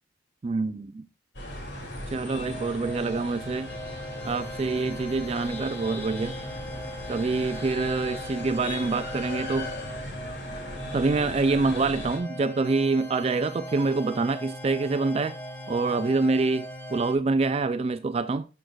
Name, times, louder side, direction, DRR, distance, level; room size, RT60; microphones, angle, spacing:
voice 1, 0.4-1.1 2.1-3.7 4.2-6.3 7.1-9.7 10.9-15.4 15.7-18.5, right 3 dB, 35° right, 0.3 m, -26 dB
sound 1, 1.3-12.2, left 1 dB, 65° left, 2.4 m, -38 dB
sound 2, 2.3-17.0, right 1 dB, 30° left, 1.1 m, -45 dB
sound 3, 3.0-17.1, left 1 dB, 10° left, 1.6 m, -40 dB
12.0 x 6.5 x 2.3 m
head